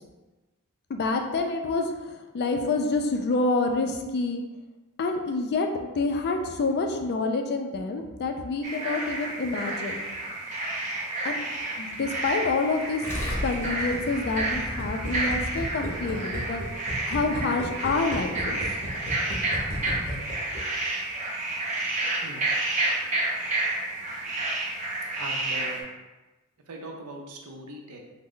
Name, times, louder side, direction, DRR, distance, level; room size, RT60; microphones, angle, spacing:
voice 1, 0.9-4.4 5.0-10.0 11.2-11.4 11.8-13.0 13.4-16.6 17.0-18.6, left 3 dB, 50° left, 5 dB, 0.3 m, -27 dB
sound 1, 8.6-25.8, right 2 dB, 35° right, 0.7 m, -30 dB
Gurgling, 13.0-20.9, equal, 10° left, 0.8 m, -33 dB
voice 2, 25.2-25.8 26.7-28.0, right 1 dB, 80° right, 1 dB, 0.5 m, -40 dB
3.1 x 2.0 x 3.7 m, 1.1 s
head